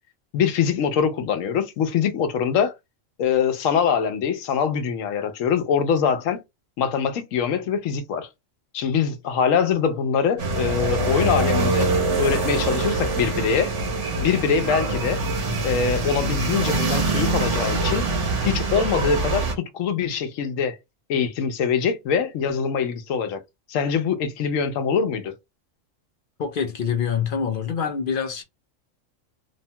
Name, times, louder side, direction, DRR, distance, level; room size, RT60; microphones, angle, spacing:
voice 1, 0.3-2.7 3.2-6.4 6.8-8.3 8.7-11.9 12.2-13.7 14.1-15.2 15.6-18.1 18.4-20.8 21.1-23.4 23.7-25.3, left 7 dB, 85° left, 1.0 m, -23 dB
sound 1, 10.4-19.5, right 2 dB, 65° right, 1.2 m, -24 dB
voice 2, 26.4-28.4, left 7 dB, 60° left, 0.5 m, -25 dB
2.9 x 2.1 x 2.7 m
omnidirectional pair, 1.3 m